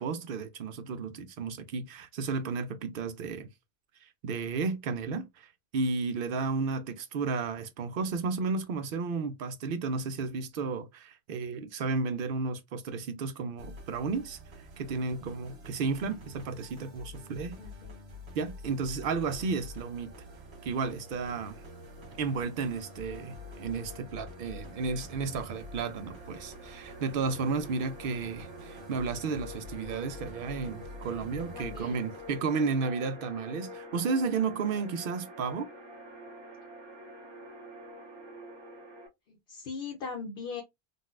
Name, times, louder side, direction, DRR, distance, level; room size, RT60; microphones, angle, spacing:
voice 1, 0.0-3.5 4.0-14.4 14.8-17.6 18.4-20.1 20.6-21.6 22.2-35.7, right 4 dB, 65° right, 0.7 m, -33 dB
sound 1, 13.6-32.8, left 1 dB, 80° right, 1.1 m, -48 dB
voice 2, 17.6-17.9 31.5-32.0 39.3-40.6, left 5 dB, 65° left, 0.8 m, -39 dB
sound 2, 19.1-39.1, equal, 30° right, 0.7 m, -48 dB
3.9 x 2.2 x 2.4 m
omnidirectional pair, 1.1 m